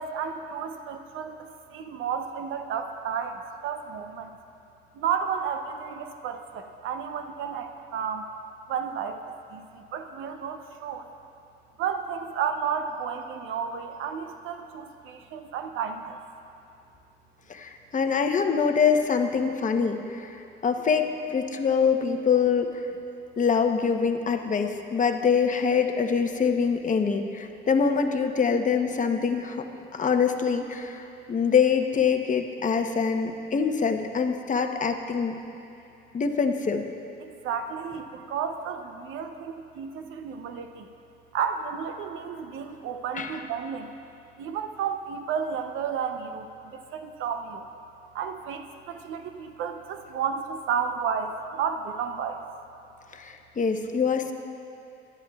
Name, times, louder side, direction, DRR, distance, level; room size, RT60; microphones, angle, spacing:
voice 1, 0.0-4.3 4.9-8.2 8.7-9.2 9.5-11.1 11.8-16.2 37.2-40.9 41.3-43.9 44.4-47.7 48.1-52.4, right 7 dB, 90° right, 6 dB, 0.7 m, -32 dB
voice 2, 17.5-22.8 23.4-31.0 31.3-35.3 36.1-36.8 43.1-43.4 53.1-54.3, left 6 dB, 40° left, 5 dB, 0.9 m, -24 dB
18.0 x 12.0 x 2.3 m, 2.7 s
cardioid pair, 90°, 20 cm